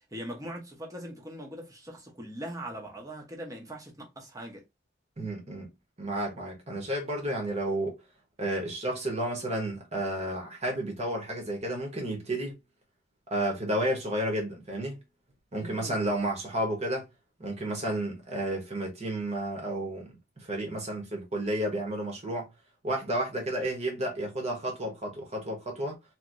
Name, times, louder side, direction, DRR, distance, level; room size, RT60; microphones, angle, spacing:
voice 1, 0.1-4.6 15.6-16.0, right 1 dB, 20° right, 1.0 m, -41 dB
voice 2, 5.2-5.7 6.0-8.0 8.4-12.5 13.3-15.0 15.5-17.1 17.4-22.5 22.8-26.0, right 1 dB, 35° right, 1.2 m, -31 dB
3.0 x 2.8 x 2.6 m
head